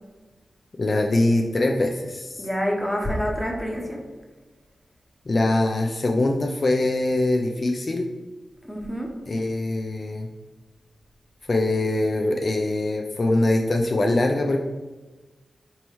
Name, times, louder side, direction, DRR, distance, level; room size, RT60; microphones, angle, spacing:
voice 1, 0.8-2.5 5.3-8.1 9.3-10.3 11.5-14.6, left 2 dB, 50° left, 2 dB, 0.4 m, -23 dB
voice 2, 2.4-4.0 8.7-9.1, equal, 5° left, 0 dB, 0.9 m, -27 dB
4.4 x 3.1 x 3.1 m, 1.2 s
cardioid pair, 55°, 0 cm